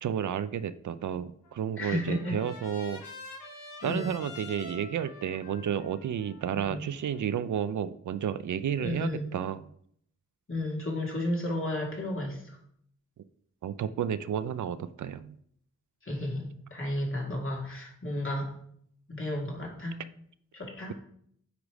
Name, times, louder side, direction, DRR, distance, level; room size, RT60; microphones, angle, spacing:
voice 1, 0.0-3.0 3.8-9.6 13.6-15.4, right 8 dB, 65° right, 14 dB, 0.5 m, -31 dB
Trumpet, 1.4-7.6, left 2 dB, 90° left, 1.5 m, -47 dB
voice 2, 1.8-2.4 3.8-4.1 6.7-6.8 8.8-9.3 10.5-12.4 16.1-18.5 19.2-19.9 20.5-20.9, left 1 dB, 40° left, -1 dB, 2.4 m, -32 dB
8.3 x 3.1 x 5.0 m, 0.67 s
cardioid pair, 50°, 32 cm